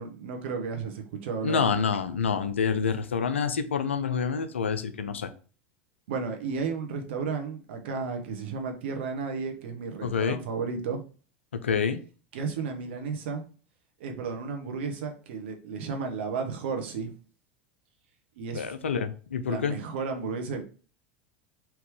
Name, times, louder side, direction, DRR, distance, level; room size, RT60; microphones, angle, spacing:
voice 1, 0.0-1.6 6.1-11.0 12.3-13.4 14.0-17.1 18.4-19.0 19.5-20.6, right 5 dB, 65° right, 4 dB, 0.9 m, -33 dB
voice 2, 1.4-5.3 10.0-10.4 11.6-12.0 18.5-19.8, left 6 dB, 80° left, 11 dB, 0.5 m, -27 dB
3.6 x 2.9 x 4.7 m, 0.39 s
hypercardioid pair, 80°, 6 cm